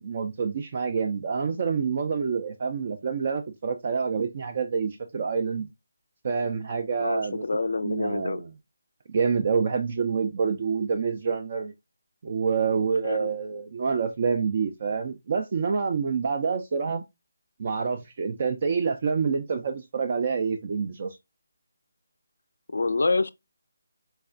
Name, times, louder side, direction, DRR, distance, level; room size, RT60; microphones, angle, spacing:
voice 1, 0.0-5.7 6.2-7.4 7.8-8.5 9.1-11.7 12.2-17.0 17.6-21.2, right 5 dB, 40° right, 0.4 m, -27 dB
voice 2, 7.0-8.4 13.0-13.3 22.7-23.3, left 3 dB, 70° left, 0.3 m, -26 dB
4.3 x 2.3 x 2.4 m
figure-of-eight pair, 155°, 0 cm